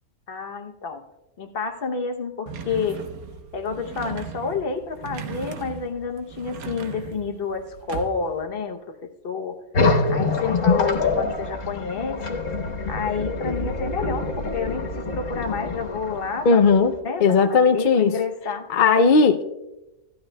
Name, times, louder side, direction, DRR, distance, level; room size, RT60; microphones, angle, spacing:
voice 1, 0.3-1.0 1.4-3.0 3.5-9.6 10.1-12.4 12.9-16.7 17.0-18.7, left 5 dB, 45° left, 0.9 m, -29 dB
sound 1, 2.5-8.5, right 6 dB, 75° right, 1.3 m, -38 dB
sound 2, 9.7-17.0, left 3 dB, 60° left, 1.6 m, -25 dB
voice 2, 16.5-16.9 17.2-18.1 18.7-19.5, left 4 dB, 85° left, 0.4 m, -17 dB
16.5 x 12.5 x 2.2 m
omnidirectional pair, 1.5 m